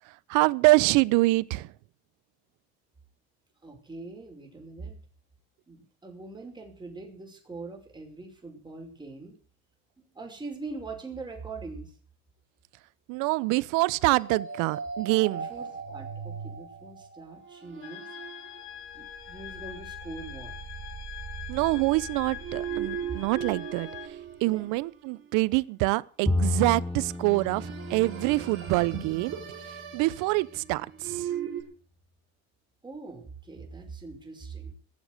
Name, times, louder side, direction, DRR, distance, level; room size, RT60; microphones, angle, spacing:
voice 1, 0.3-1.7 13.1-15.5 21.5-23.9 24.4-29.3 29.9-31.3, right 22 dB, 70° right, 0.8 m, -25 dB
voice 2, 3.6-5.0 5.7-9.3 10.1-11.9 15.3-18.1 18.9-20.5 24.4-24.7 32.8-34.7, right 3 dB, 15° right, 5.6 m, -42 dB
sound 1, 14.2-25.3 26.8-31.6, right 7 dB, 40° right, 4.7 m, -39 dB
sound 2, 17.8-24.1, left 12 dB, 60° left, 3.2 m, -43 dB
Bowed string instrument, 26.3-29.7, left 2 dB, 5° left, 1.0 m, -32 dB
18.5 x 7.4 x 8.1 m
supercardioid pair, 120°, 32 cm